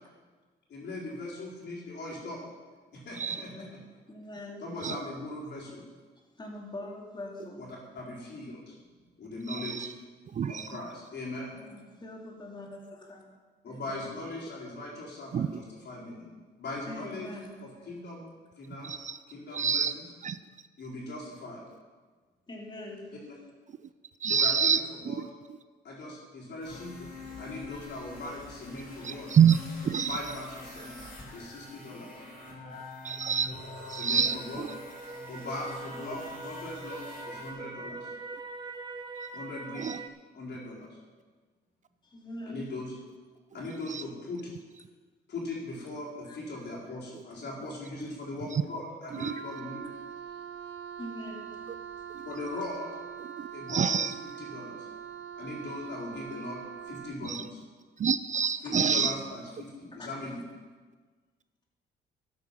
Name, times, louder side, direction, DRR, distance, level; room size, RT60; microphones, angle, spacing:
voice 1, 0.7-2.4 2.9-3.5 4.6-5.8 7.6-7.7 7.9-8.7 9.2-9.9 10.5-11.6 13.6-16.3 16.6-17.3 17.6-18.3 18.6-18.9 19.3-20.1 20.8-21.6 23.2-23.3 24.3-25.2 25.8-27.1 27.4-29.3 30.0-31.0 31.3-32.2 33.9-34.7 35.3-38.1 39.3-40.0 40.3-41.0 42.5-43.0 43.5-44.5 45.3-49.8 50.3-50.4 52.2-52.9 53.5-54.9 55.4-56.6 56.9-57.6 58.6-60.4, left 2 dB, 60° left, -4 dB, 4.3 m, -39 dB
voice 2, 3.4-3.7 4.1-4.7 6.4-7.7 11.6-13.2 13.7-14.1 16.9-17.6 22.5-23.1 34.1-34.6 42.0-42.7 46.2-46.4 51.0-51.7 58.6-59.1 60.0-60.1, left 1 dB, 20° left, -1 dB, 2.7 m, -43 dB
voice 3, 10.4-10.7 15.3-15.6 18.8-19.2 19.5-19.9 20.2-20.4 24.2-25.1 29.0-29.6 29.8-30.2 33.0-33.5 33.9-34.7 39.8-40.0 43.9-44.0 48.5-48.6 49.2-49.3 53.4-54.1 57.3-57.4 58.0-59.1, right 7 dB, 40° right, 13 dB, 0.4 m, -26 dB
sound 1, 26.6-37.5, left 3 dB, 40° left, 4.3 m, -46 dB
sound 2, 34.2-40.1, right 3 dB, 20° right, 0.9 m, -42 dB
Wind instrument woodwind instrument, 49.1-57.3, right 8 dB, 75° right, 0.9 m, -43 dB
13.5 x 8.6 x 5.6 m, 1.4 s
cardioid pair, 90°, 20 cm